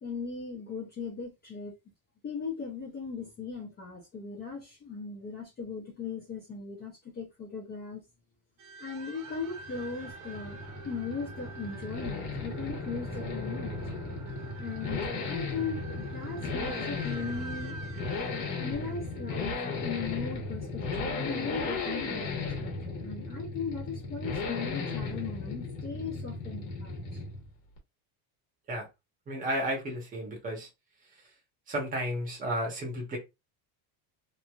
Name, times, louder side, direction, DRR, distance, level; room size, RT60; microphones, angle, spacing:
voice 1, 0.0-1.7 2.2-8.0 8.8-10.6 10.8-13.9 14.6-17.8 18.6-27.2, left 5 dB, 25° left, 0.6 m, -38 dB
sound 1, 8.6-19.8, right 3 dB, 85° right, 1.1 m, -46 dB
Accelerating revving vroom, 9.3-27.5 27.8-27.9, left 3 dB, 65° left, 1.2 m, -36 dB
voice 2, 29.3-30.7 31.7-33.2, equal, 20° right, 0.9 m, -32 dB
3.0 x 2.5 x 2.3 m
cardioid pair, 170°, 43 cm